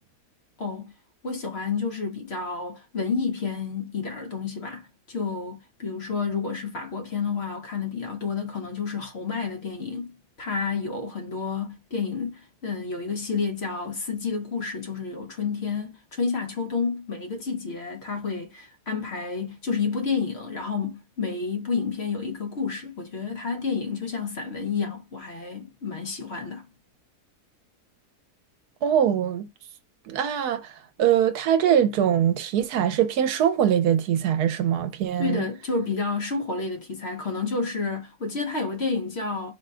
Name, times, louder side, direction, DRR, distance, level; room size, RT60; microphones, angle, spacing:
voice 1, 0.6-0.9 1.2-26.7 35.2-39.5, left 5 dB, 50° left, 0.9 m, -30 dB
voice 2, 28.8-29.5 30.1-35.4, right 9 dB, 80° right, 1.2 m, -22 dB
4.7 x 2.2 x 3.7 m
omnidirectional pair, 1.7 m